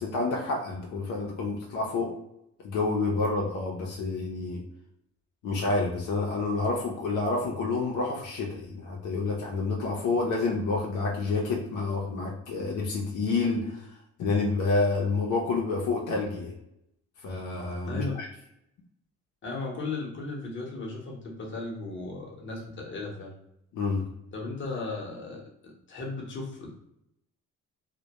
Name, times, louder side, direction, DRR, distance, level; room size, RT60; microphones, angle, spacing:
voice 1, 0.0-2.1 2.6-4.6 5.4-13.9 14.2-16.5 17.2-18.3 23.7-24.0, left 3 dB, 75° left, -1 dB, 0.6 m, -28 dB
voice 2, 17.9-18.2 19.4-23.3 24.3-26.8, left 3 dB, 40° left, -2 dB, 0.8 m, -36 dB
2.2 x 2.1 x 2.8 m, 0.80 s
cardioid pair, 90°, 30 cm